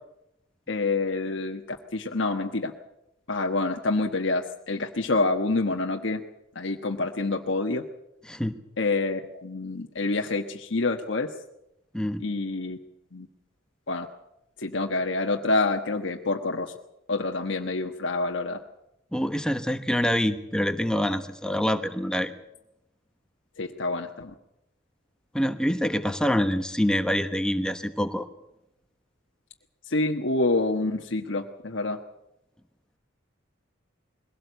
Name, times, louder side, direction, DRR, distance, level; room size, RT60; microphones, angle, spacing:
voice 1, 0.7-2.7 3.3-6.2 6.5-7.9 8.8-11.3 12.2-12.8 13.1-13.3 13.9-14.1 14.6-16.7 17.1-18.6 23.6-24.3 29.9-32.0, left 3 dB, 65° left, 3 dB, 1.3 m, -27 dB
voice 2, 8.3-8.6 11.9-12.3 19.1-22.3 25.3-28.3, equal, 5° left, 8 dB, 1.2 m, -26 dB
22.0 x 17.5 x 8.1 m, 0.86 s
head